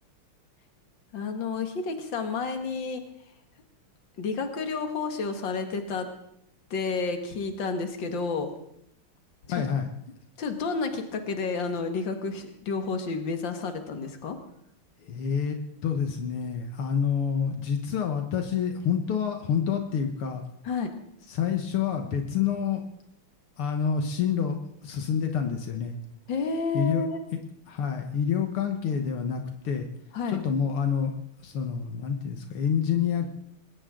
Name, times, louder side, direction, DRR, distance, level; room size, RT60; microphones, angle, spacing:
voice 1, 1.1-3.0 4.2-6.1 6.7-8.5 10.4-14.4 20.7-20.9 26.3-27.2 30.1-30.4, left 4 dB, 60° left, 6 dB, 2.5 m, -30 dB
voice 2, 9.5-9.9 15.0-20.4 21.3-22.8 23.6-26.0 26.7-27.0 27.7-29.9 30.3-31.1 31.4-33.3, left 7 dB, 80° left, 5 dB, 2.2 m, -28 dB
20.5 x 18.0 x 3.8 m, 0.74 s
omnidirectional pair, 2.4 m